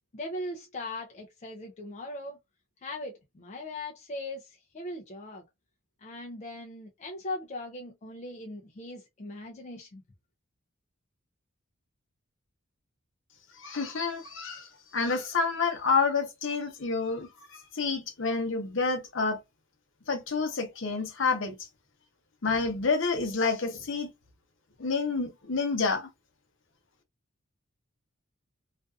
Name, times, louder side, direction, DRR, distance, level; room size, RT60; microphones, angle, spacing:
voice 1, 0.1-2.4 2.8-5.4 6.0-10.0, left 1 dB, 35° left, 0.4 m, -39 dB
voice 2, 13.6-19.4 20.1-21.5 22.4-24.1 24.8-26.1, left 4 dB, 60° left, 0.7 m, -29 dB
2.5 x 2.3 x 2.4 m
head